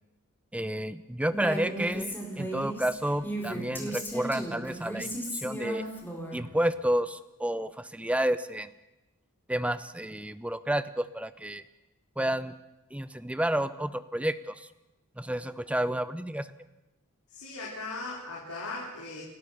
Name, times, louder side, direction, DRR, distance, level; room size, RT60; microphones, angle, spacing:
voice 1, 0.5-5.8 6.3-8.7 9.5-11.6 12.2-12.5 12.9-14.5 15.2-16.5, right 1 dB, 5° right, 13 dB, 0.7 m, -30 dB
Female speech woman speaking, 1.3-6.4, right 1 dB, 10° left, 4.0 m, -35 dB
voice 2, 17.3-19.2, left 3 dB, 80° left, -5 dB, 4.9 m, -38 dB
29.5 x 13.0 x 6.7 m, 0.99 s
head